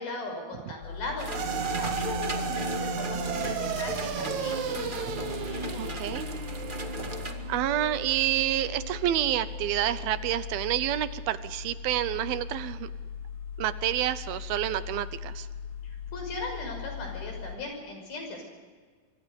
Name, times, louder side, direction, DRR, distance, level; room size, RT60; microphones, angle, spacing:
voice 1, 0.0-5.8 15.8-18.4, left 2 dB, 80° left, 3 dB, 7.7 m, -38 dB
sound 1, 0.8-17.6, left 6 dB, 60° left, 3.1 m, -40 dB
sound 2, 1.2-7.3, right 1 dB, 40° right, 0.7 m, -38 dB
sound 3, 1.3-9.9, right 6 dB, 60° right, 2.4 m, -35 dB
voice 2, 5.8-6.3 7.5-12.9 13.6-15.5, right 13 dB, 80° right, 14 dB, 2.7 m, -28 dB
25.5 x 24.5 x 5.3 m, 1.5 s
omnidirectional pair, 4.3 m